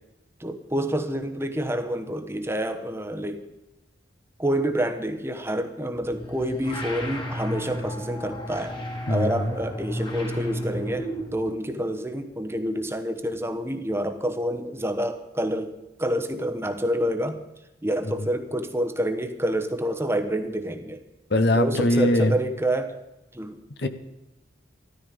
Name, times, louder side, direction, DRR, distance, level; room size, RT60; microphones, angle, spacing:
voice 1, 0.4-3.4 4.4-8.8 9.1-17.4 17.8-21.0 21.5-23.0 23.3-23.9, right 1 dB, 15° right, 7 dB, 1.1 m, -28 dB
sound 1, 5.9-11.5, equal, 25° left, 1.9 m, -33 dB
voice 2, 9.1-9.6 18.0-18.3 21.3-22.4 23.8-23.9, left 1 dB, 60° left, 10 dB, 1.1 m, -22 dB
14.5 x 13.5 x 5.2 m, 0.96 s
head